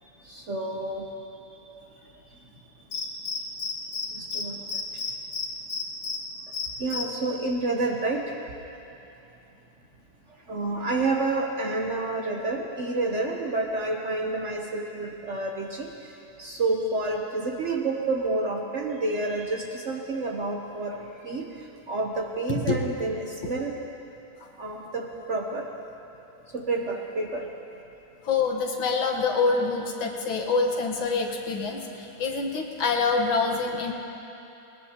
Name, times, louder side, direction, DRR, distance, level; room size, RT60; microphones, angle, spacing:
voice 1, 0.3-1.0 4.1-4.6 6.8-8.2 10.5-15.9 16.4-21.5 21.9-23.7 24.6-25.7 26.5-27.5, right 2 dB, 50° right, 1 dB, 0.9 m, -29 dB
Cricket, 2.9-4.1 4.3-4.4 4.7-6.2 6.5-7.0, left 5 dB, 55° left, 2.0 m, -30 dB
voice 2, 28.2-33.9, left 4 dB, 85° left, 2 dB, 2.1 m, -26 dB
20.5 x 20.0 x 2.9 m, 2.9 s
omnidirectional pair, 2.1 m